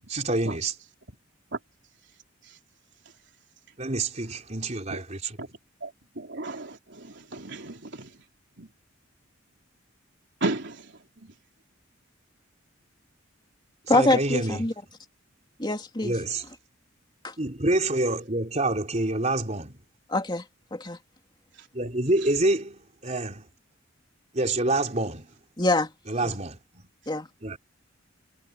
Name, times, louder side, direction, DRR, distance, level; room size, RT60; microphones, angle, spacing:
voice 1, 0.1-0.7 3.8-5.4 13.9-14.6 16.0-16.4 17.4-19.8 21.7-23.5 24.3-25.3 26.1-26.9 27.4-27.6, right 2 dB, 35° right, 4.0 m, -27 dB
voice 2, 6.2-8.1 8.6-8.7 10.4-10.8, right 2 dB, 60° right, 3.8 m, -33 dB
voice 3, 13.9-14.7 15.6-16.2 17.2-17.3 20.1-20.5 20.7-21.0 25.6-25.9 26.2-26.3 27.1-27.3, left 2 dB, 25° left, 2.8 m, -24 dB
head